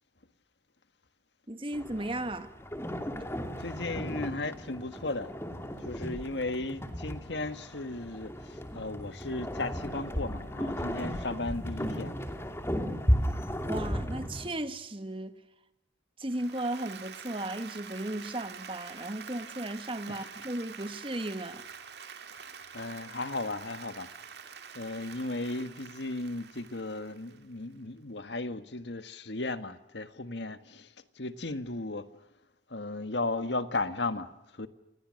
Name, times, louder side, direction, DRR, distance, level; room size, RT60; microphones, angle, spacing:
voice 1, 1.5-2.5 13.7-15.4 16.2-21.6, right 1 dB, 30° right, 1.6 m, -35 dB
sound 1, 1.7-14.5, equal, 15° left, 2.7 m, -34 dB
voice 2, 3.6-5.3 5.8-12.1 20.1-20.3 22.7-24.1 24.7-30.9 31.2-32.1 32.7-34.7, left 2 dB, 70° left, 1.6 m, -35 dB
Applause, 16.3-27.6, right 6 dB, 60° right, 2.2 m, -47 dB
29.0 x 29.0 x 6.5 m
head